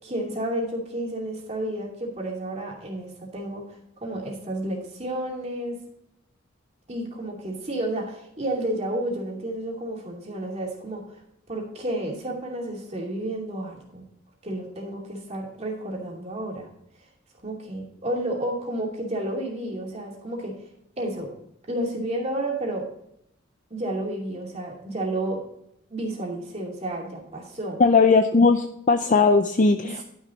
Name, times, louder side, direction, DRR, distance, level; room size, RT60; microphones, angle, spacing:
voice 1, 0.0-5.8 6.9-11.0 11.5-14.1 14.4-16.7 17.4-20.5 21.0-21.3 21.7-22.8 23.7-25.4 25.9-27.8 29.8-30.0, right 1 dB, 30° right, -1 dB, 2.6 m, -31 dB
voice 2, 27.8-29.9, left 4 dB, 40° left, 7 dB, 0.5 m, -18 dB
11.5 x 6.4 x 4.0 m, 0.77 s
head